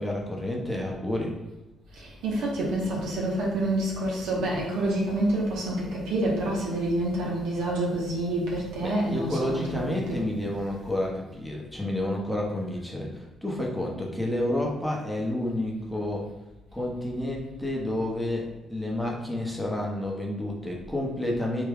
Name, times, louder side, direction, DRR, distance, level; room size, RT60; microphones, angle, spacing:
voice 1, 0.0-1.3 8.8-16.3 16.7-21.6, left 1 dB, ahead, -2 dB, 0.8 m, -30 dB
voice 2, 2.0-10.3, right 1 dB, 90° right, -3 dB, 0.9 m, -28 dB
3.4 x 2.2 x 3.4 m, 1.0 s
cardioid pair, 90°, 0 cm